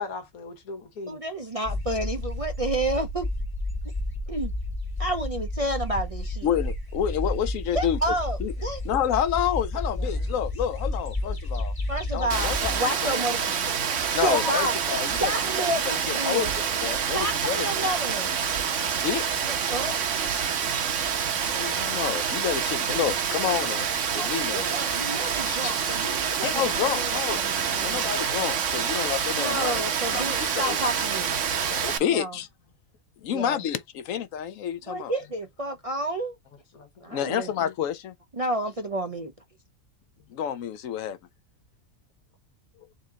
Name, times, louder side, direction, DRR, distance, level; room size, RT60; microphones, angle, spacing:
voice 1, 0.0-1.2 10.0-10.4 14.3-14.5 36.7-37.2, left 4 dB, 90° left, 1.6 m, -36 dB
voice 2, 1.1-3.3 4.3-4.5 5.0-6.5 7.7-8.8 11.9-13.7 14.2-14.8 15.2-16.5 17.1-18.3 19.5-20.0 24.1-28.0 29.4-31.4 32.0-32.4 33.3-33.6 34.9-36.3 37.0-37.5 38.3-39.3, right 1 dB, 40° right, 0.5 m, -30 dB
sound 1, 1.6-12.8, left 1 dB, 15° left, 1.0 m, -31 dB
voice 3, 6.4-8.0 8.4-8.5 8.8-11.7 12.1-13.5 14.1-15.7 16.1-17.9 19.0-19.5 21.5-23.9 24.1-24.7 25.5-25.7 26.4-29.8 30.1-30.8 31.6-32.5 33.2-35.1 37.1-38.1 40.3-41.2, left 9 dB, 70° left, 1.0 m, -29 dB
Rain, 12.3-32.0, right 7 dB, 65° right, 1.1 m, -27 dB
4.1 x 3.7 x 2.8 m
omnidirectional pair, 1.5 m